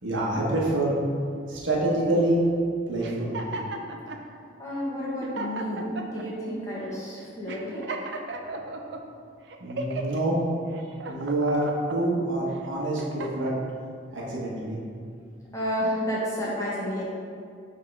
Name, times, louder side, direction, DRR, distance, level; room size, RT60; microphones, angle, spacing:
voice 1, 0.0-1.0 1.5-2.4 2.9-3.3 9.6-10.4 11.1-13.5 14.1-14.8, right 1 dB, 80° right, -4 dB, 1.3 m, -26 dB
sound 1, 3.0-4.2 4.8-4.9 5.2-6.3 6.8-7.0 7.5-9.0 9.5-10.2 10.7-12.0 12.5-13.6, right 2 dB, 60° right, 0.5 m, -35 dB
voice 2, 4.6-8.0 15.5-17.0, equal, 15° left, -7 dB, 1.3 m, -31 dB
5.5 x 3.7 x 5.3 m, 2.3 s
head